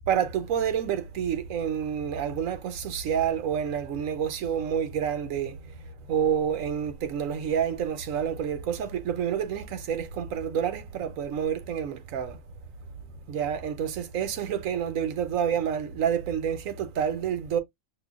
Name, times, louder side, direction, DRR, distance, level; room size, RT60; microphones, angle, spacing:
voice 1, 0.1-12.4 13.3-17.6, right 8 dB, 85° right, 1.1 m, -28 dB
5.3 x 2.2 x 2.3 m
omnidirectional pair, 1.4 m